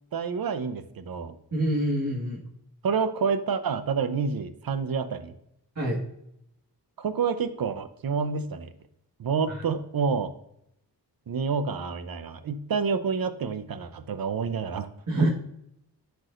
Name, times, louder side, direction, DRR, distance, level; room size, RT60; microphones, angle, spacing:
voice 1, 0.1-1.4 2.8-5.3 7.0-8.7 9.2-10.3 11.3-14.9 15.2-15.3, right 5 dB, 55° right, 11 dB, 0.7 m, -28 dB
voice 2, 1.5-2.4 5.8-6.0 15.1-15.3, right 1 dB, 40° right, -5 dB, 1.6 m, -25 dB
12.0 x 4.7 x 2.5 m, 0.78 s
wide cardioid pair, 90°, 41 cm